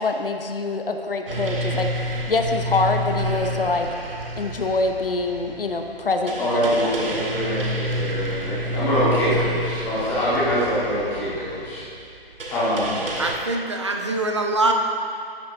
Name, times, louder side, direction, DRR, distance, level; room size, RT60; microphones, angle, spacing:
voice 1, 0.0-3.9 4.4-7.2, left 3 dB, 65° left, 5 dB, 0.8 m, -25 dB
sound 1, 1.3-13.4, equal, 60° right, 1.5 m, -29 dB
voice 2, 6.4-11.8 12.5-13.0, equal, 5° left, -11 dB, 1.4 m, -24 dB
voice 3, 13.2-14.7, right 2 dB, 30° right, 3 dB, 0.6 m, -23 dB
11.5 x 8.5 x 3.0 m, 2.4 s
figure-of-eight pair, 160°, 31 cm